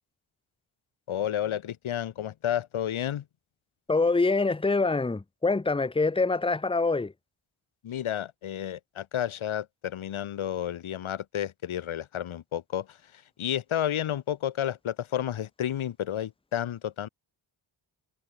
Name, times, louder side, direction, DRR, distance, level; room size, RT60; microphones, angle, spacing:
voice 1, 1.1-3.2 7.8-17.1, left 10 dB, 75° left, 3.0 m, -31 dB
voice 2, 3.9-7.1, left 3 dB, 10° left, 0.9 m, -25 dB
wide cardioid pair, 150°, 49 cm